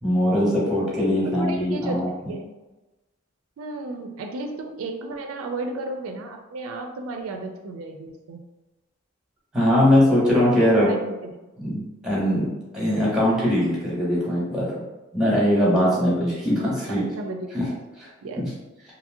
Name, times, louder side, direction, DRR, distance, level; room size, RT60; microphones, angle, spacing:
voice 1, 0.0-2.1 9.5-10.9 11.6-14.8 15.1-17.0 17.5-17.7 18.0-18.1 18.4-18.5, left 1 dB, 5° right, -6 dB, 0.9 m, -21 dB
voice 2, 1.4-2.5 3.6-8.4 10.8-11.5 15.8-16.2 16.9-17.8 18.2-18.4, right 2 dB, 80° right, 4 dB, 0.4 m, -34 dB
2.7 x 2.7 x 2.5 m, 1.1 s
head